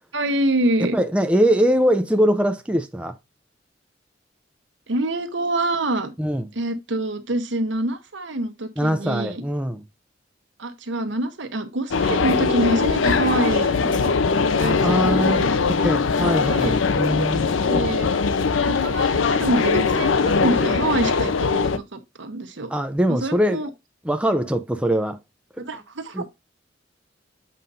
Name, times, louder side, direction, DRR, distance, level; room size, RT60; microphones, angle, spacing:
voice 1, 0.1-1.0 4.9-6.1 6.5-9.4 10.6-14.1 14.5-15.6 16.4-16.8 17.7-18.1 18.7-22.7 23.1-23.7 25.6-26.2, right 1 dB, 70° right, 1.1 m, -26 dB
voice 2, 0.8-3.1 6.2-6.5 8.8-9.8 14.8-15.4 15.8-17.5 22.7-23.6 24.0-25.2 26.1-26.4, equal, 5° right, 0.5 m, -22 dB
sound 1, 11.9-21.8, left 5 dB, 85° left, 0.6 m, -21 dB
7.5 x 2.6 x 5.5 m
head